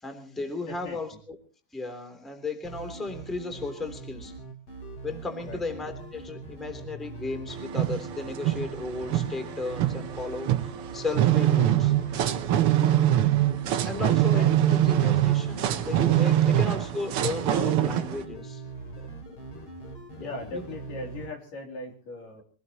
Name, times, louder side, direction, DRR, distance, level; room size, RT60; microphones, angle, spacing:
voice 1, 0.0-1.3 1.7-4.3 5.0-10.7 10.9-11.9 13.8-18.6 20.2-20.6, left 3 dB, ahead, 6 dB, 2.7 m, -35 dB
voice 2, 0.7-1.0 5.4-5.6 12.8-13.0 14.3-14.5 16.4-16.6 20.2-22.4, left 2 dB, 70° left, 2 dB, 4.8 m, -39 dB
sound 1, 2.6-21.3, right 3 dB, 45° left, 4.6 m, -42 dB
sound 2, 7.5-18.2, right 12 dB, 80° right, 1.2 m, -24 dB
24.5 x 18.5 x 3.0 m, 0.40 s
omnidirectional pair, 3.9 m